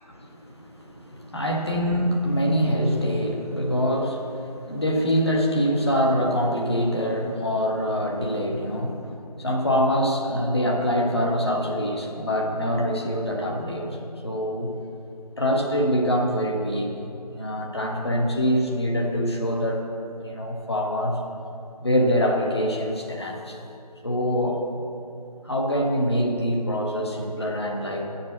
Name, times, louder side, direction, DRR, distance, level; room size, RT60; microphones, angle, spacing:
voice 1, 0.1-14.0 14.2-14.7 15.4-16.9 17.3-19.8 20.2-21.2 21.8-23.6 24.0-24.6 25.4-28.1, equal, 40° left, 0 dB, 1.6 m, -24 dB
12.0 x 7.5 x 7.3 m, 2.8 s
figure-of-eight pair, 180°, 21 cm